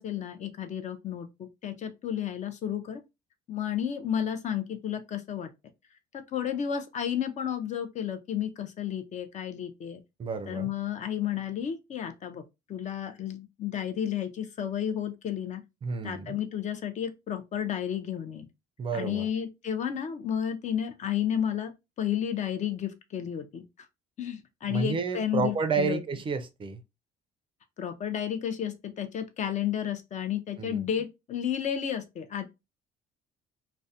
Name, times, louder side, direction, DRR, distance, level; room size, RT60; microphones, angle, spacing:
voice 1, 0.0-3.0 3.5-5.5 6.1-10.0 10.5-12.4 12.7-15.6 16.0-18.5 18.9-21.7 22.0-23.6 24.2-26.0 27.8-32.5, left 9 dB, 45° left, 0.5 m, -32 dB
voice 2, 10.2-10.7 15.8-16.4 18.8-19.3 24.6-26.8 30.6-30.9, right 5 dB, 30° right, 0.4 m, -30 dB
2.3 x 2.1 x 2.6 m
cardioid pair, 110°, 17 cm